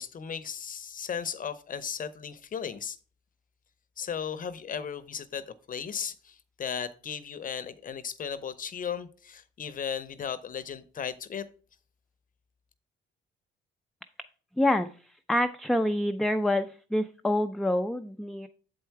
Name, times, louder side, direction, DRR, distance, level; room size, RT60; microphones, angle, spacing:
voice 1, 0.0-3.0 4.0-11.5, left 7 dB, 45° left, 0.6 m, -36 dB
voice 2, 14.6-14.9 15.3-18.5, left 1 dB, ahead, 0.4 m, -26 dB
7.6 x 4.5 x 4.6 m
cardioid pair, 90°, 20 cm